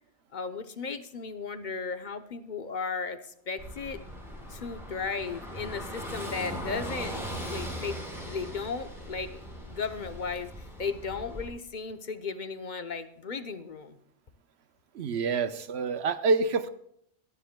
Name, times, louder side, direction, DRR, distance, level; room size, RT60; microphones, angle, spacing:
voice 1, 0.3-4.0 4.5-7.1 7.5-9.4 9.7-14.0, left 5 dB, 50° left, 10 dB, 0.8 m, -35 dB
Car passing by / Engine, 3.6-11.5, equal, ahead, 4.5 m, -39 dB
voice 2, 14.9-16.7, right 4 dB, 75° right, 11 dB, 1.0 m, -27 dB
23.0 x 10.0 x 2.2 m, 0.71 s
omnidirectional pair, 1.1 m